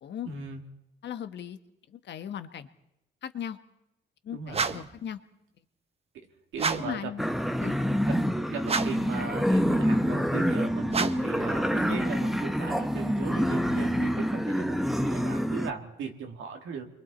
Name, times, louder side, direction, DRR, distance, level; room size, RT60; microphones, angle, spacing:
voice 1, 0.2-0.6 4.3-4.7 6.1-6.3 6.5-7.1 8.1-16.9, right 5 dB, 80° right, 4 dB, 2.3 m, -37 dB
voice 2, 1.0-1.6 1.9-2.7 3.2-3.6 4.2-5.2 6.8-7.3 7.6-7.8, left 9 dB, 60° left, 10 dB, 1.2 m, -37 dB
sound 1, 4.5-5.0 6.5-7.0 8.6-9.1 10.9-11.4, right 5 dB, 30° right, 0.9 m, -30 dB
sound 2, 7.2-15.7, equal, ahead, 0.9 m, -27 dB
28.5 x 22.5 x 4.3 m, 0.83 s
cardioid pair, 90°, 20 cm